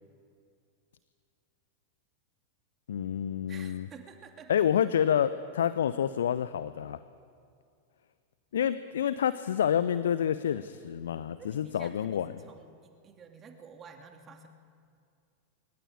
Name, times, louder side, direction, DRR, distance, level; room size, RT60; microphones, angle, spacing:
voice 1, 2.9-3.9 4.5-7.0 8.5-12.3, left 9 dB, 65° left, 14 dB, 0.7 m, -28 dB
voice 2, 3.5-4.5 11.4-14.5, right 6 dB, 25° right, 4 dB, 2.8 m, -51 dB
23.5 x 19.5 x 8.8 m, 2.3 s
figure-of-eight pair, 90°, 0 cm